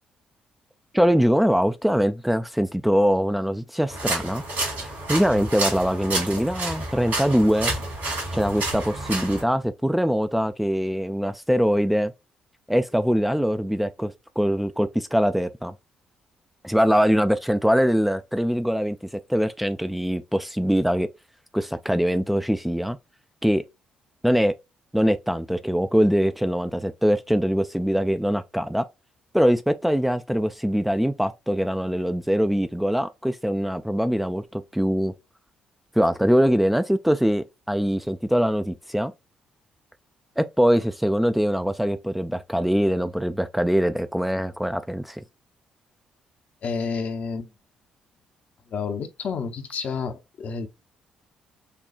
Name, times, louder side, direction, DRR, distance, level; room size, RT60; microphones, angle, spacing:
voice 1, 0.9-4.4 4.8-7.7 8.3-12.1 12.7-15.7 16.6-21.1 21.5-23.0 23.4-23.6 24.2-24.5 24.9-28.8 29.3-35.1 35.9-39.1 40.4-45.2, equal, 5° right, 0.4 m, -23 dB
sound 1, 3.9-9.4, right 2 dB, 60° right, 2.8 m, -29 dB
voice 2, 46.6-47.5 48.7-50.7, left 5 dB, 50° left, 0.8 m, -30 dB
6.7 x 2.3 x 2.4 m
figure-of-eight pair, 40°, 3 cm